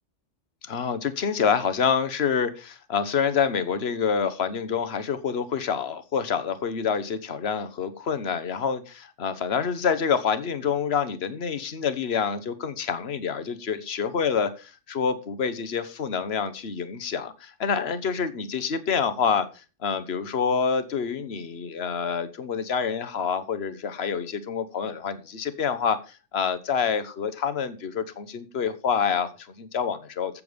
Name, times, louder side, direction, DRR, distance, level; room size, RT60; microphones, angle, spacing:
voice 1, 0.6-19.5 19.8-30.4, left 6 dB, 55° left, 12 dB, 1.4 m, -27 dB
14.5 x 7.4 x 5.2 m, 0.33 s
omnidirectional pair, 1.3 m